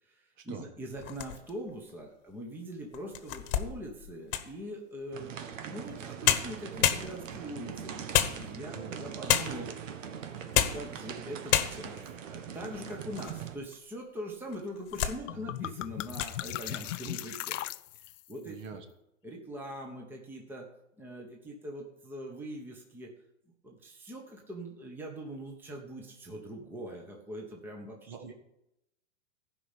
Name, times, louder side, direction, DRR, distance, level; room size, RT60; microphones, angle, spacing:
voice 1, 0.0-12.0 12.3-17.6 18.0-18.6 19.2-20.7 21.0-23.1 23.6-28.3, equal, 5° right, 0 dB, 1.2 m, -42 dB
sound 1, 1.0-1.7 2.3-2.4 2.9-4.6 5.9-6.0 6.2-7.5 8.1-8.8 9.3-9.7 10.4-10.9 11.2-11.3 11.5-12.1 12.6-13.4 13.7-13.8 14.5-15.2 15.6-15.8 16.1-16.4, left 11 dB, 45° left, 1.3 m, -29 dB
sound 2, 5.1-13.5, right 8 dB, 85° right, 1.6 m, -41 dB
voice 2, 8.7-9.1 15.2-15.5 18.4-18.8 28.1-28.3, right 6 dB, 40° right, 7 dB, 1.6 m, -45 dB
sound 3, 14.9-15.0 15.3-18.3, left 15 dB, 80° left, 0.6 m, -38 dB
15.0 x 5.6 x 8.3 m, 0.84 s
supercardioid pair, 165°, 37 cm